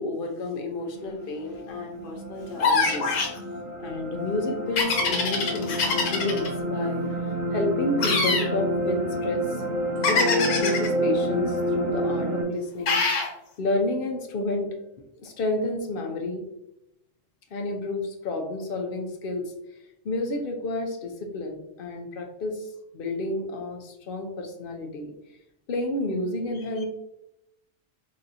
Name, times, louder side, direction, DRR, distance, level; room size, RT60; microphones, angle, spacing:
voice 1, 0.0-3.2 3.8-7.0 7.5-9.6 10.1-13.0 13.6-14.7 15.2-16.4 17.5-19.4 20.0-25.1 25.7-26.9, left 2 dB, 55° left, 3 dB, 0.7 m, -30 dB
sound 1, 0.8-12.4, equal, 60° right, 2.0 m, -29 dB
sound 2, 2.6-3.4 4.8-6.5 8.0-8.5 10.0-10.9 12.9-13.3, left 4 dB, 80° left, 1.2 m, -24 dB
4.0 x 2.8 x 2.6 m, 0.85 s
omnidirectional pair, 1.3 m